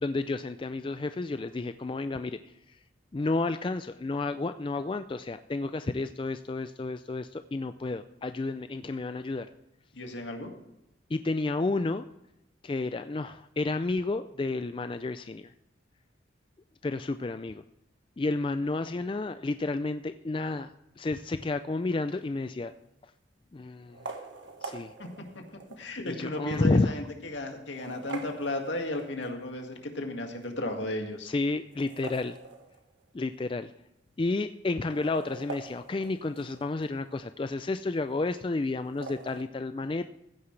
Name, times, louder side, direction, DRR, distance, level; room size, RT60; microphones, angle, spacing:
voice 1, 0.0-2.8 3.1-9.5 11.1-12.1 12.6-15.5 16.8-17.6 18.2-20.7 21.0-22.7 23.0-23.1 23.5-24.1 24.6-24.9 26.0-27.0 31.2-32.4 33.1-33.7 34.2-40.0, left 3 dB, 25° left, 10 dB, 0.3 m, -31 dB
voice 2, 9.9-10.5 25.0-25.1 25.4-25.5 25.8-31.3, left 1 dB, 75° left, 3 dB, 2.0 m, -34 dB
sound 1, 22.2-22.6 23.8-25.9 26.5-26.6 27.5-29.5 31.6-33.1 33.4-33.5 33.7-33.8 34.6-36.9 38.8-39.4, right 4 dB, 75° right, 1.6 m, -44 dB
15.0 x 9.7 x 3.3 m, 0.87 s
head